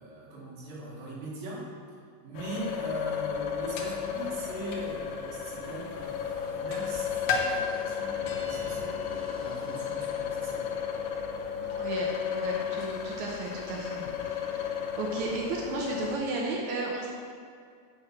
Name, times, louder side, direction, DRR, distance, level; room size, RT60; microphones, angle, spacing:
voice 1, 0.0-1.7 2.2-10.8, right 2 dB, 65° right, -5 dB, 3.5 m, -40 dB
sound 1, 2.3-16.2, left 8 dB, 85° left, 2.8 m, -34 dB
sound 2, 3.3-16.5, left 4 dB, 70° left, 1.9 m, -41 dB
sound 3, 6.7-11.7, equal, 5° right, 1.3 m, -53 dB
voice 2, 11.6-17.1, right 3 dB, 85° right, -2 dB, 1.6 m, -34 dB
7.7 x 6.1 x 6.1 m, 2.2 s
omnidirectional pair, 4.6 m